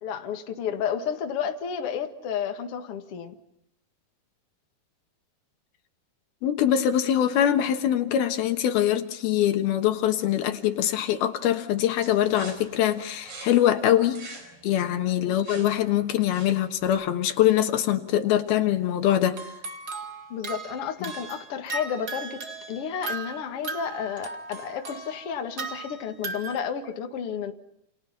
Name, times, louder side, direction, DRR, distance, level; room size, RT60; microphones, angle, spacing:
voice 1, 0.0-3.4 15.2-15.4 20.3-22.4 22.7-27.5, left 7 dB, 45° left, 2.1 m, -31 dB
voice 2, 6.4-14.2 14.6-19.4 21.0-21.1, left 11 dB, 75° left, 3.2 m, -23 dB
sound 1, 12.0-16.9, right 3 dB, 75° right, 7.2 m, -45 dB
sound 2, 18.3-18.5 19.3-26.7, right 4 dB, 40° right, 1.5 m, -37 dB
29.5 x 29.0 x 5.8 m
omnidirectional pair, 4.5 m